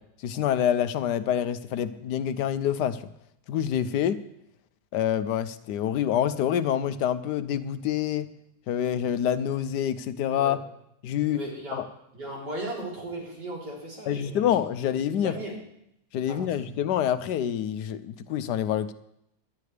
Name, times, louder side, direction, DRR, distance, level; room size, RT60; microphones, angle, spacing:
voice 1, 0.2-3.0 3.5-4.2 4.9-8.3 8.7-10.6 11.0-11.4 11.7-11.9 14.1-15.3 16.1-18.9, left 10 dB, 80° left, 12 dB, 1.3 m, -26 dB
voice 2, 11.3-11.8 12.1-14.5 15.1-15.6 16.3-16.9, right 1 dB, 80° right, -4 dB, 4.3 m, -37 dB
19.0 x 11.5 x 3.3 m, 0.78 s
omnidirectional pair, 1.8 m